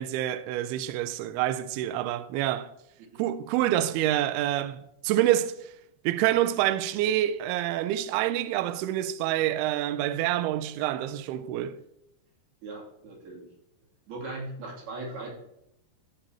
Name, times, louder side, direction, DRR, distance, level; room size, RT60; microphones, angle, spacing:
voice 1, 0.0-2.7 3.2-5.7 6.0-11.8, right 13 dB, 85° right, 2.2 m, -27 dB
voice 2, 12.6-13.5 14.1-15.3, right 2 dB, 60° right, 4.9 m, -38 dB
13.0 x 8.8 x 3.0 m
omnidirectional pair, 5.2 m